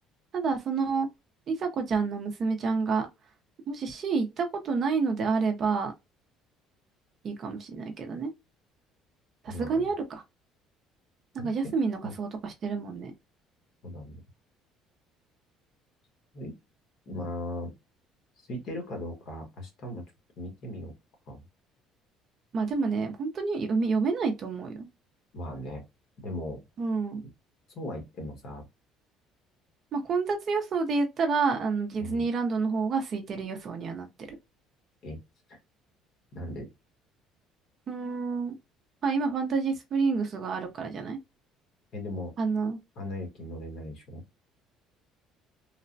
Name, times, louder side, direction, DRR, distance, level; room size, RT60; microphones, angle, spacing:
voice 1, 0.3-1.1 1.5-3.1 3.7-5.9 7.2-8.3 9.4-10.2 11.3-13.1 22.5-24.9 26.8-27.2 29.9-34.4 37.9-38.5 39.0-41.2 42.4-42.8, right 4 dB, 35° right, 0.5 m, -29 dB
voice 2, 9.5-9.9 11.4-11.8 12.0-12.1 13.8-14.2 16.3-16.5 17.1-17.7 18.5-20.0 20.4-20.9 21.3-21.4 25.3-25.8 26.2-26.6 27.7-28.7 32.0-32.2 35.0-35.2 35.5-35.6 36.3-36.7 41.9-42.3 43.0-44.2, left 1 dB, 45° left, 1.0 m, -38 dB
3.1 x 2.0 x 2.5 m
cardioid pair, 170°, 0 cm